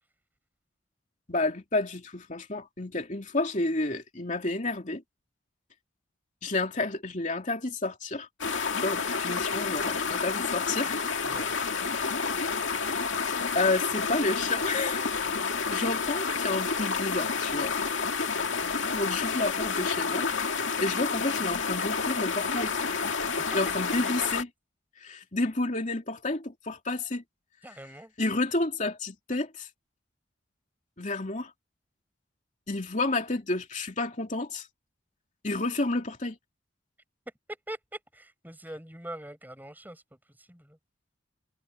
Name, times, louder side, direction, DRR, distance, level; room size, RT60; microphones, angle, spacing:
voice 1, 1.3-5.0 6.4-8.3 8.8-11.0 13.5-15.1 15.7-17.7 18.9-20.3 20.6-22.7 23.5-24.5 25.0-27.2 28.2-29.7 31.0-31.5 32.7-34.7 35.4-36.4, left 2 dB, 40° left, 3.0 m, -30 dB
sound 1, 8.4-24.4, left 5 dB, 70° left, 2.1 m, -29 dB
voice 2, 11.2-11.6 23.4-23.6 27.6-28.1 37.5-40.8, right 1 dB, 10° right, 5.3 m, -43 dB
head